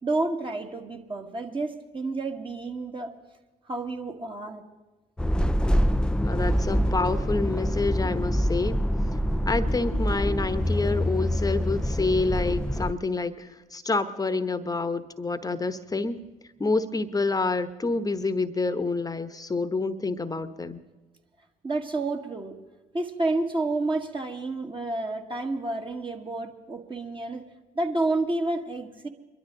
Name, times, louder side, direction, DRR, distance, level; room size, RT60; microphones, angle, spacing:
voice 1, 0.0-3.1 3.7-4.6 21.6-22.6 22.9-27.5 27.8-29.1, right 2 dB, 30° right, 2 dB, 1.9 m, -30 dB
sound 1, 5.2-12.9, equal, 5° left, 0.5 m, -25 dB
voice 2, 6.2-8.9 9.5-16.2 16.6-20.8, left 3 dB, 20° left, 12 dB, 1.1 m, -28 dB
23.0 x 12.5 x 3.9 m, 1.1 s
hypercardioid pair, 60°, 17 cm